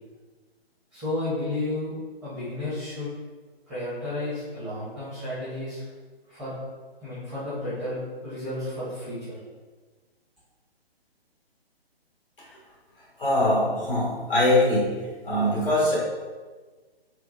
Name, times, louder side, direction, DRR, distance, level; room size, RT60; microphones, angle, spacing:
voice 1, 0.9-1.9 2.2-3.1 3.7-5.8 6.3-6.5 7.0-9.4, left 2 dB, ahead, -13 dB, 0.7 m, -32 dB
voice 2, 13.2-14.9 15.2-16.0, left 1 dB, 60° left, -6 dB, 1.5 m, -22 dB
4.5 x 2.1 x 2.5 m, 1.4 s
figure-of-eight pair, 135°, 31 cm